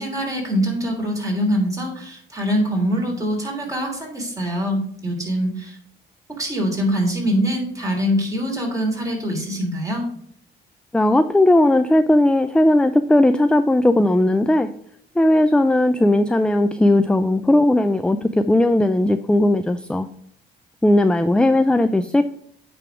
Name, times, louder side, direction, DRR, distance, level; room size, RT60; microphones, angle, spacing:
voice 1, 0.0-5.8 6.4-10.1, equal, 15° right, 0 dB, 3.0 m, -23 dB
voice 2, 10.9-14.7 15.2-20.1 20.8-22.2, left 1 dB, 5° left, 10 dB, 0.3 m, -17 dB
9.1 x 3.5 x 4.9 m, 0.68 s
cardioid pair, 90°, 20 cm